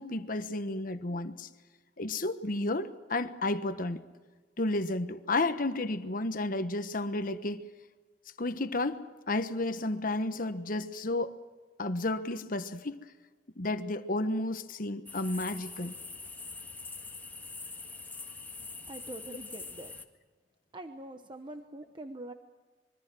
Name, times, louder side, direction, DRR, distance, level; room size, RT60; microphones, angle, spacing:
voice 1, 0.0-1.5 2.0-4.0 4.6-7.6 8.4-11.4 11.8-13.0 13.6-15.9, left 2 dB, 50° left, 1.2 m, -32 dB
sound 1, 15.1-20.0, left 3 dB, 10° left, 1.7 m, -44 dB
voice 2, 18.6-19.9 20.7-22.3, right 2 dB, 30° right, 1.1 m, -44 dB
26.0 x 23.5 x 6.2 m
head